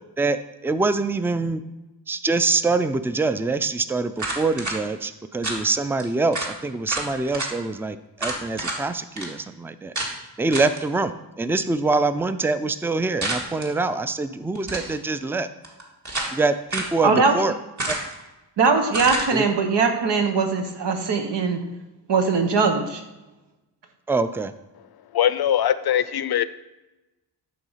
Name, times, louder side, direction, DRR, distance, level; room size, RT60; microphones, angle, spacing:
voice 1, 0.6-1.6 2.1-9.9 10.4-15.5 16.3-17.5 17.9-18.0 19.3-19.4 24.1-24.5, right 3 dB, 5° right, 12 dB, 0.4 m, -24 dB
sound 1, 4.2-4.8 5.4-5.6 6.0-6.1 6.3-6.5 6.9-7.5 8.2-8.8 9.2-9.3 9.9-10.1 10.5-10.8 13.2-13.7 14.5-15.0 15.6-16.4 16.7-16.9 17.8-18.2 18.9-19.3, right 2 dB, 45° right, 1.9 m, -29 dB
voice 2, 17.0-17.4 18.6-21.6 22.1-23.0, right 4 dB, 85° right, 5 dB, 1.2 m, -21 dB
voice 3, 25.1-26.4, left 10 dB, 65° left, 15 dB, 0.5 m, -21 dB
11.0 x 3.9 x 5.6 m, 1.0 s
wide cardioid pair, 85°, 41 cm